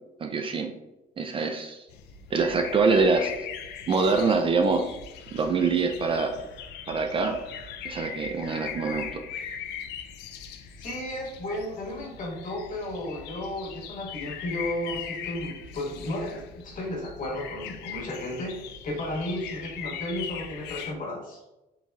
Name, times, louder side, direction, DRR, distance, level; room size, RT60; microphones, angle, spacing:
voice 1, 0.2-0.7 1.2-1.8 2.3-3.3 3.9-5.0 5.3-6.3 6.9-7.4 7.8-9.2, right 4 dB, 30° right, 5 dB, 0.4 m, -24 dB
sound 1, 1.9-20.9, left 7 dB, 80° left, 0.4 m, -40 dB
voice 2, 10.8-21.4, left 1 dB, 50° left, -2 dB, 1.4 m, -33 dB
3.9 x 3.8 x 2.3 m, 0.98 s
cardioid pair, 110°, 17 cm